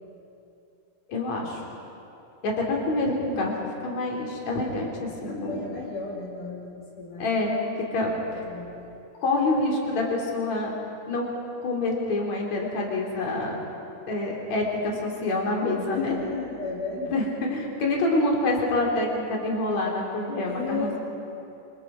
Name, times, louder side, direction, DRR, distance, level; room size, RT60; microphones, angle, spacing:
voice 1, 1.1-1.6 2.4-3.5 3.8-5.6 7.2-7.6 7.9-8.4 9.2-10.7 11.1-11.3 11.6-13.6 14.1-16.2 16.9-21.0, left 2 dB, 60° left, -1 dB, 4.2 m, -26 dB
voice 2, 5.3-7.4 8.1-8.8 15.9-17.2 17.8-17.9 20.5-21.0, left 4 dB, 80° left, -3 dB, 4.0 m, -34 dB
27.5 x 25.0 x 4.9 m, 2.7 s
omnidirectional pair, 3.7 m